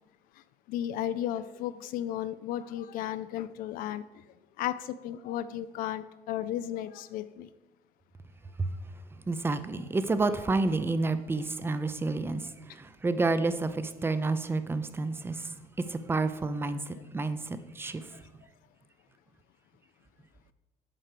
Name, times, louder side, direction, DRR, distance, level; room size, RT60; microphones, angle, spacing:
voice 1, 0.7-4.0 4.6-7.5 16.9-17.0, left 11 dB, 75° left, 0.4 m, -34 dB
voice 2, 9.3-12.5 12.7-15.5 15.8-18.1, right 3 dB, 15° right, 0.5 m, -29 dB
7.6 x 4.6 x 6.7 m
cardioid pair, 125°, 15 cm